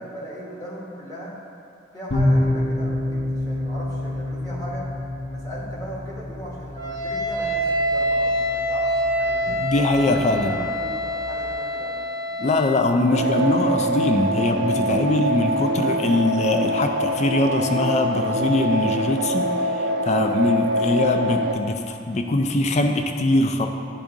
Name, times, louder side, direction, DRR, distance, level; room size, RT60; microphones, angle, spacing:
voice 1, 0.0-1.4 1.9-4.9 5.3-9.7 10.0-12.0 12.7-13.4, equal, 20° left, -6 dB, 1.3 m, -37 dB
sound 1, 2.1-11.5, left 1 dB, 60° left, 1.1 m, -28 dB
Wind instrument woodwind instrument, 6.8-12.9, equal, 85° right, 0.9 m, -26 dB
voice 2, 9.5-10.6 12.4-19.5 19.8-23.7, left 2 dB, 35° left, 5 dB, 0.4 m, -22 dB
sound 2, 13.1-21.5, right 1 dB, 60° right, 0.4 m, -24 dB
9.5 x 3.5 x 3.7 m, 2.4 s
head